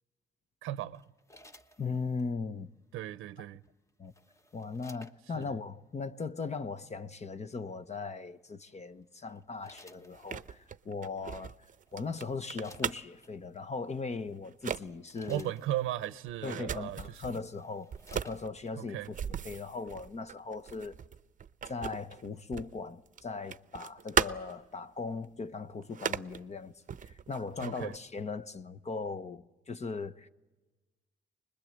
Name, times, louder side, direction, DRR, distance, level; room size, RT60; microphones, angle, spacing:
voice 1, 0.6-1.0 2.9-3.6 5.3-5.6 15.3-17.2 18.7-19.1 27.6-27.9, right 13 dB, 85° right, 0.7 m, -36 dB
sound 1, 0.9-2.3 3.6-5.5 6.5-6.8 8.5-8.8 9.3-10.7 11.5-11.6 11.9-13.3 14.1-14.2 14.7-16.2 16.9-17.0 17.2-18.8 19.2-19.3, left 1 dB, 15° left, 1.2 m, -58 dB
voice 2, 1.8-2.7 4.0-4.1 4.5-11.5 11.9-15.5 16.4-19.0 19.4-21.0 21.7-26.7 27.0-30.3, left 4 dB, 35° left, 0.9 m, -38 dB
sound 2, 10.1-13.3 13.9-14.1 14.4-14.8 15.2-17.4 17.9-22.8 23.1-24.7 25.2-25.3 25.8-26.4 26.9-28.0, right 7 dB, 40° right, 0.7 m, -37 dB
24.5 x 21.0 x 7.6 m
cardioid pair, 90°, 20 cm